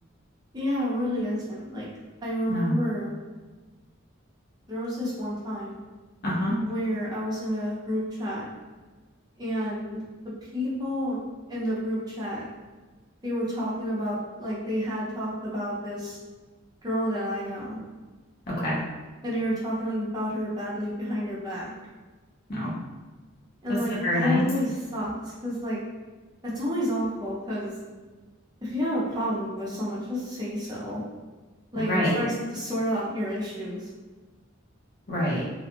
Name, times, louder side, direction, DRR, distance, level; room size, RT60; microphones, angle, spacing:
voice 1, 0.5-1.9 2.2-3.1 4.7-5.8 6.6-8.4 9.4-10.0 10.5-11.2 11.5-12.4 13.2-16.2 16.8-17.8 19.2-21.7 23.6-25.8 26.4-27.7 28.6-31.0 31.7-33.9, equal, 20° right, -7 dB, 0.6 m, -30 dB
voice 2, 2.5-2.8 6.2-6.6 18.5-18.8 22.5-22.7 23.9-24.4 31.7-32.2 35.1-35.4, left 1 dB, 50° left, -6 dB, 0.8 m, -26 dB
2.5 x 2.3 x 2.8 m, 1.3 s
head